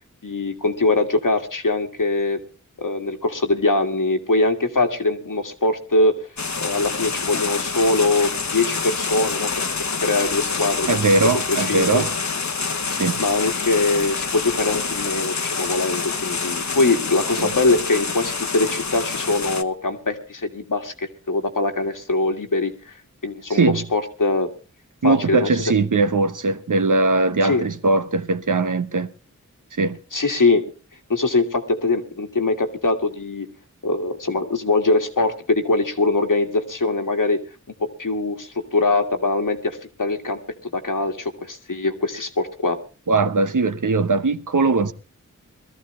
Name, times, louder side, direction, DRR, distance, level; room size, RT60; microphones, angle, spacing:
voice 1, 0.2-2.4 2.8-6.2 6.6-9.5 10.0-10.9 11.3-12.0 13.2-22.9 23.2-24.5 25.0-25.5 27.4-27.7 30.1-30.6 31.1-33.5 33.8-37.4 37.8-42.8, left 3 dB, 90° left, 2.0 m, -22 dB
sound 1, 6.4-19.6, left 4 dB, 65° left, 1.0 m, -27 dB
voice 2, 10.9-12.1 12.9-13.2 17.4-17.5 23.5-23.9 25.0-29.1 29.7-30.0 43.1-44.9, right 3 dB, 80° right, 1.1 m, -20 dB
21.5 x 14.0 x 3.2 m
wide cardioid pair, 65°, 31 cm